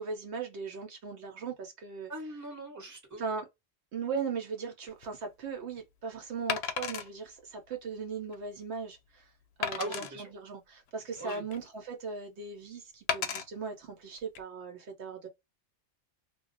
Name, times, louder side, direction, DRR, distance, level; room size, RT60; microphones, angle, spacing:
voice 1, 0.0-2.1 3.2-3.5 3.9-9.3 9.6-15.3, right 5 dB, 70° right, 0.9 m, -38 dB
voice 2, 2.1-3.2 9.8-10.3 11.2-11.4, right 1 dB, 15° right, 0.9 m, -40 dB
Wood, 4.9-5.1 6.5-7.1 7.7-7.8 8.3-8.4 9.6-10.1 10.9-11.7 13.1-13.4 14.2-14.4, left 7 dB, 70° left, 0.8 m, -33 dB
2.3 x 2.0 x 3.8 m
omnidirectional pair, 1.2 m